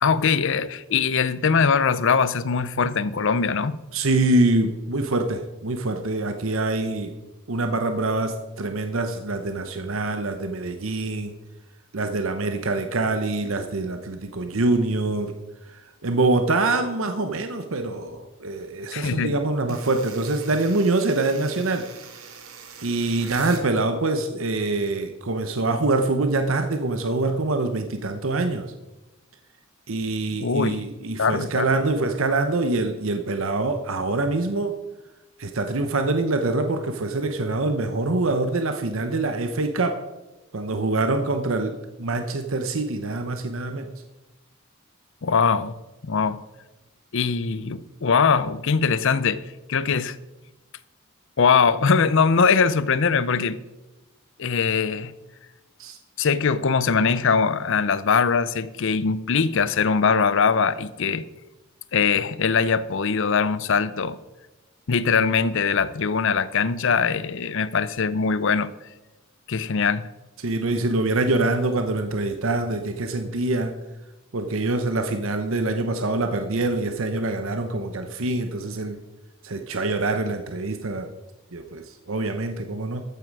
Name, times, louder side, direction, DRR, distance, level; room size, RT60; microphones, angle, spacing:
voice 1, 0.0-3.8 18.9-19.3 30.4-30.8 31.2-31.7 45.2-45.7 46.0-46.4 47.1-49.4 49.7-50.2 51.4-53.6 54.4-55.1 56.2-61.2 61.9-64.2 64.9-68.7 69.5-70.1, left 5 dB, 60° left, 16 dB, 0.6 m, -21 dB
voice 2, 3.9-7.1 7.5-11.3 11.9-15.3 15.7-21.8 22.8-28.7 29.9-34.8 35.4-40.0 40.5-43.9 55.8-56.0 70.4-73.7 74.3-79.0 79.4-81.1 81.5-83.0, right 2 dB, 70° right, 7 dB, 0.9 m, -25 dB
sound 1, 19.7-23.7, right 6 dB, 90° right, 1.8 m, -42 dB
13.5 x 9.1 x 4.8 m, 1.0 s
head